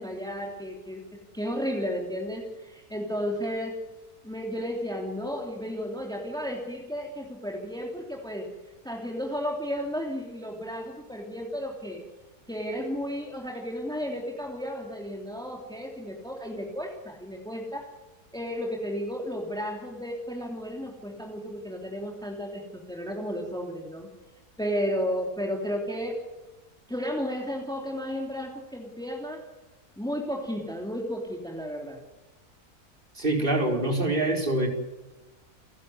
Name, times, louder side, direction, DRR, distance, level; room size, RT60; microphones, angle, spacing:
voice 1, 0.0-3.8 4.2-8.5 8.8-12.0 12.5-17.9 18.3-24.1 24.6-26.2 26.9-29.4 30.0-32.0, equal, ahead, 0 dB, 3.1 m, -33 dB
voice 2, 33.2-34.7, right 1 dB, 30° right, 2 dB, 4.5 m, -25 dB
29.0 x 11.5 x 9.6 m, 1.1 s
omnidirectional pair, 1.7 m